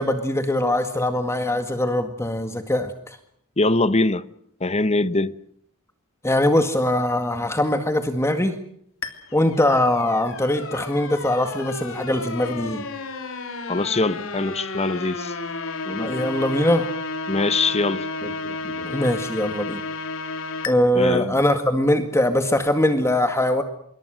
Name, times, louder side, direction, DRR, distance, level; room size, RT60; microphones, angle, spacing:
voice 1, 0.0-3.2 6.2-8.6 9.3-12.9 15.9-16.9 18.2-19.8 20.6-23.6, left 1 dB, 15° left, 1.9 m, -22 dB
voice 2, 3.6-4.3 4.6-5.3 13.7-15.3 17.3-18.1 20.9-21.4, left 2 dB, 30° left, 1.1 m, -22 dB
sound 1, 9.0-20.7, left 3 dB, 65° left, 3.1 m, -32 dB
26.5 x 23.5 x 6.4 m
head